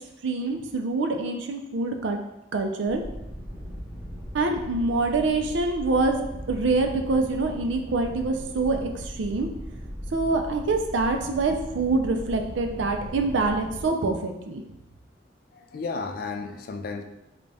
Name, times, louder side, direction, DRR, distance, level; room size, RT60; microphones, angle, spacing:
voice 1, 0.2-2.2 2.5-3.0 4.3-9.5 10.1-14.6, right 3 dB, 75° right, 4 dB, 0.4 m, -25 dB
sound 1, 2.9-13.9, equal, 25° right, 1.4 m, -38 dB
voice 2, 15.5-17.0, left 4 dB, 50° left, 6 dB, 0.3 m, -33 dB
3.9 x 2.3 x 3.3 m, 0.91 s
head